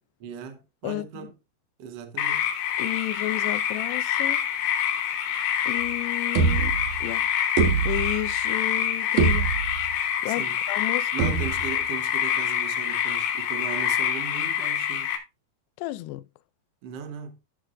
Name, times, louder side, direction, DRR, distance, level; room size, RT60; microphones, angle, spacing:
voice 1, 0.2-1.3 1.8-2.5 10.2-10.6 11.1-15.1 16.8-17.4, right 7 dB, 85° right, 1.4 m, -38 dB
voice 2, 0.8-1.3 2.8-4.4 5.7-7.3 7.6-9.5 10.2-11.3 15.8-16.2, left 18 dB, 90° left, 2.7 m, -32 dB
sound 1, 2.2-15.2, left 10 dB, 65° left, 2.8 m, -26 dB
sound 2, 5.8-5.9 6.3-7.1 7.6-8.4 8.8-8.9 9.2-9.9 11.2-11.8, right 5 dB, 55° right, 1.8 m, -24 dB
13.0 x 6.2 x 2.5 m
omnidirectional pair, 4.7 m